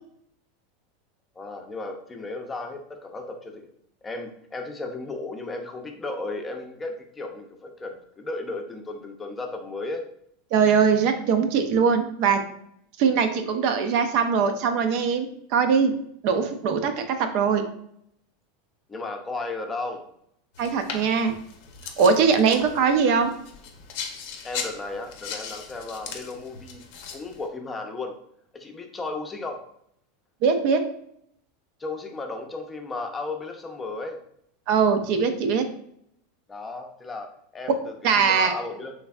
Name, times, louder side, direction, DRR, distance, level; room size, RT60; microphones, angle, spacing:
voice 1, 1.4-3.7 4.0-10.0 18.9-20.1 22.5-22.7 24.4-26.8 27.1-28.1 28.5-29.6 31.8-34.2 36.5-38.9, left 3 dB, 20° left, 3 dB, 0.5 m, -34 dB
voice 2, 10.5-12.4 13.0-15.9 16.2-17.6 20.6-21.4 22.0-23.3 30.4-30.8 34.7-35.6 38.0-38.5, right 6 dB, 60° right, 7 dB, 0.4 m, -21 dB
sound 1, 20.5-27.5, left 6 dB, 65° left, 0.6 m, -38 dB
3.3 x 3.2 x 2.3 m, 0.70 s
hypercardioid pair, 105°, 0 cm